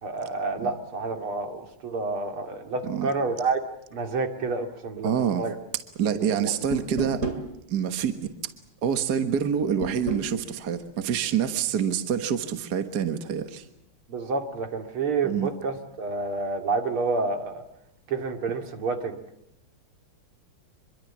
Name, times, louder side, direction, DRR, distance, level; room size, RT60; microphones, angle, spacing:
voice 1, 0.0-3.6 3.9-5.5 6.1-6.5 14.1-17.6 18.1-19.2, right 4 dB, 80° right, 6 dB, 3.3 m, -29 dB
voice 2, 5.0-5.5 6.0-7.3 7.7-8.3 8.8-13.7 15.2-15.5, right 8 dB, 50° right, 9 dB, 1.8 m, -26 dB
sound 1, 6.7-7.5 9.8-10.3, right 2 dB, 35° right, 2.7 m, -30 dB
25.5 x 23.5 x 7.3 m, 0.80 s
omnidirectional pair, 2.3 m